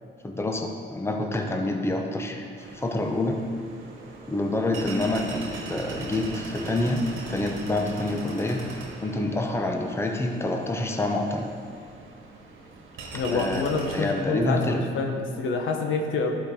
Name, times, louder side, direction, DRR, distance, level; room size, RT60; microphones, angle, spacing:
voice 1, 0.2-3.4 4.3-7.0 7.3-11.5 13.3-13.7 13.9-14.9, left 2 dB, 10° left, 3 dB, 0.8 m, -27 dB
sound 1, 2.6-14.2, right 3 dB, 80° right, 1.5 m, -40 dB
voice 2, 13.1-16.4, left 4 dB, 75° left, 2 dB, 1.1 m, -27 dB
11.5 x 5.1 x 3.8 m, 2.3 s
cardioid pair, 90°, 20 cm